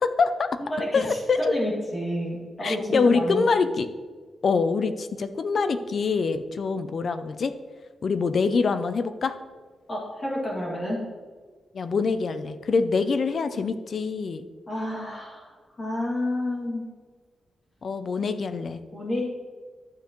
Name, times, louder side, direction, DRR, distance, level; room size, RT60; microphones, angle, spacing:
voice 1, 0.0-0.6 0.9-1.5 2.6-3.9 4.4-7.5 8.0-9.4 11.7-14.5 17.8-18.8, left 4 dB, 45° left, 11 dB, 0.4 m, -25 dB
voice 2, 0.6-3.6 9.9-11.0 14.7-16.9 18.9-19.3, left 1 dB, 30° left, -4 dB, 2.4 m, -30 dB
11.5 x 7.2 x 3.1 m, 1.5 s
wide cardioid pair, 175°, 0 cm